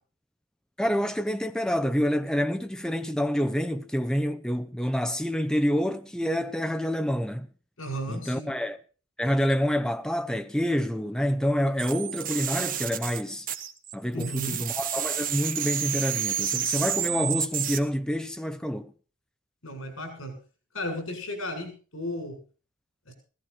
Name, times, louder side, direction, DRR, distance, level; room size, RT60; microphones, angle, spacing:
voice 1, 0.8-7.5 8.1-8.8 9.2-13.5 13.9-18.9, equal, 5° left, 0.7 m, -27 dB
voice 2, 7.8-8.5 14.1-14.6 19.6-20.4 20.7-22.4 23.1-23.2, equal, 80° left, 7.5 m, -35 dB
sound 1, 11.8-13.9 14.2-17.8, right 9 dB, 40° right, 1.2 m, -30 dB
16.5 x 14.5 x 4.4 m
head